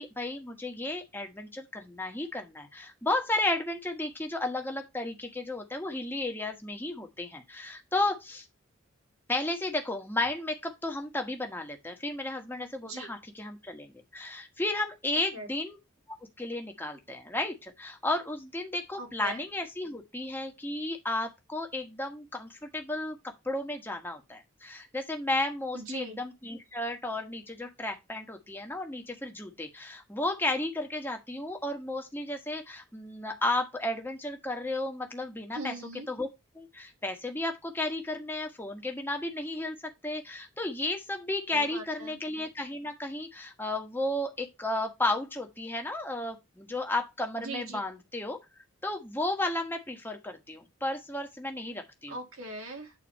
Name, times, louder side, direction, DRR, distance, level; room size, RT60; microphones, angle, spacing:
voice 1, 0.0-8.4 9.3-15.8 16.4-23.2 23.4-35.7 36.1-36.3 36.5-39.8 40.0-48.4 48.8-52.2, left 2 dB, 10° left, 1.3 m, -33 dB
voice 2, 19.0-19.4 25.7-26.2 35.5-36.1 41.5-42.2 47.4-47.8 52.1-52.9, right 2 dB, 80° right, 2.1 m, -40 dB
8.9 x 4.1 x 4.2 m
head